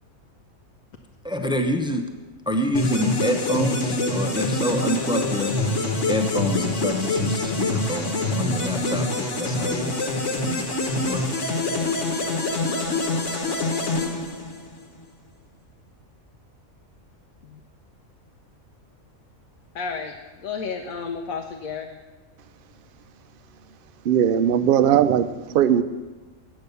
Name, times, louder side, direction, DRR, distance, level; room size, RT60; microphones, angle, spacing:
voice 1, 1.2-2.1 2.5-5.5 6.0-9.9 10.4-10.7 11.0-11.4, left 1 dB, 5° right, 5 dB, 0.4 m, -27 dB
sound 1, 2.7-14.8, left 2 dB, 60° left, 1.5 m, -25 dB
voice 2, 19.7-20.1 20.4-21.9, left 5 dB, 80° left, 3 dB, 1.2 m, -31 dB
voice 3, 24.0-25.8, right 9 dB, 70° right, 12 dB, 0.5 m, -19 dB
8.6 x 8.1 x 6.8 m, 1.2 s
omnidirectional pair, 1.4 m